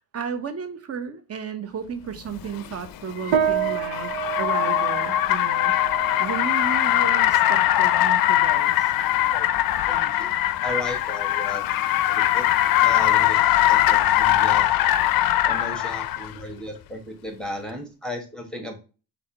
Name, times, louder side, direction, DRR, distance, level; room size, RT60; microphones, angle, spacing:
voice 1, 0.0-4.1 4.4-5.7 6.2-8.9, right 6 dB, 35° right, 0.9 m, -33 dB
Car, 2.4-16.3, left 13 dB, 50° left, 0.5 m, -21 dB
sound 1, 3.3-13.0, right 8 dB, 90° right, 0.7 m, -31 dB
voice 2, 9.9-10.3 10.6-11.6 12.1-12.5 12.8-13.4 13.6-14.7 15.4-18.7, left 1 dB, ahead, 1.1 m, -35 dB
4.1 x 3.4 x 3.6 m
supercardioid pair, 75°, 45 cm